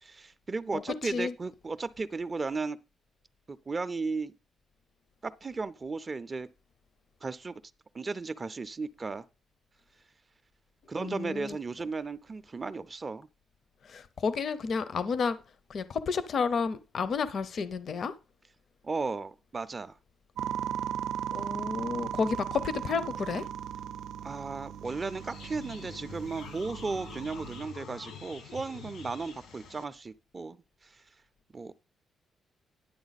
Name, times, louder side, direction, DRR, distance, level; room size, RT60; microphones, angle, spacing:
voice 1, 0.0-2.8 3.5-4.3 5.2-6.5 7.2-7.6 7.9-9.3 10.9-13.3 18.8-20.0 24.2-31.0 31.5-31.7, right 4 dB, 25° right, 0.4 m, -35 dB
voice 2, 0.7-1.3 11.0-11.6 13.8-15.4 15.7-18.1 21.3-23.5, left 5 dB, 45° left, 0.5 m, -31 dB
sound 1, 20.4-27.6, right 9 dB, 90° right, 0.5 m, -37 dB
sound 2, 24.8-29.8, left 6 dB, 85° left, 1.8 m, -47 dB
10.5 x 7.7 x 4.0 m
cardioid pair, 160°, 0 cm